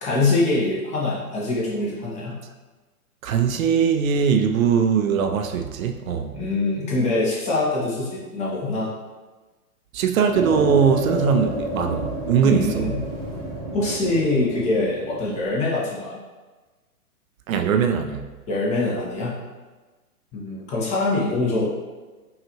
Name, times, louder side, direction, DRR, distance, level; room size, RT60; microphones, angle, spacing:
voice 1, 0.0-2.3 6.3-8.9 12.4-12.9 13.7-16.2 18.5-19.3 20.3-21.6, left 2 dB, 15° left, -5 dB, 0.7 m, -24 dB
voice 2, 3.2-6.4 9.9-12.9 17.5-18.3, right 7 dB, 65° right, 6 dB, 0.5 m, -21 dB
sound 1, 10.3-15.5, right 1 dB, 15° right, 0.9 m, -30 dB
5.5 x 2.4 x 2.8 m, 1.3 s
hypercardioid pair, 125°, 45 cm